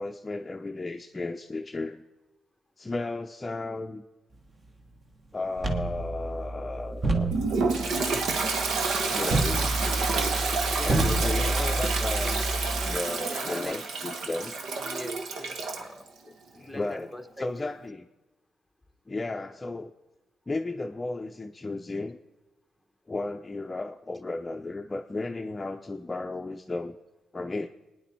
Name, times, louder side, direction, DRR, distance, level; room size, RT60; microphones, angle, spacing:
voice 1, 0.0-2.0 2.8-4.0 5.3-7.3 9.1-10.1 10.8-12.4 12.8-14.5 16.3-17.1 17.4-18.1 19.1-19.9 20.5-22.2 23.1-27.0 27.3-27.7, left 2 dB, 20° left, 4 dB, 0.6 m, -34 dB
sound 1, 5.6-13.0, right 2 dB, 35° right, 1.6 m, -30 dB
Toilet flush, 7.3-15.9, right 4 dB, 75° right, 1.4 m, -29 dB
voice 2, 10.6-11.5 13.3-13.8 14.8-16.1 16.6-17.7, left 1 dB, ahead, 6 dB, 1.0 m, -42 dB
26.5 x 10.0 x 4.5 m, 1.1 s
cardioid pair, 115°, 0 cm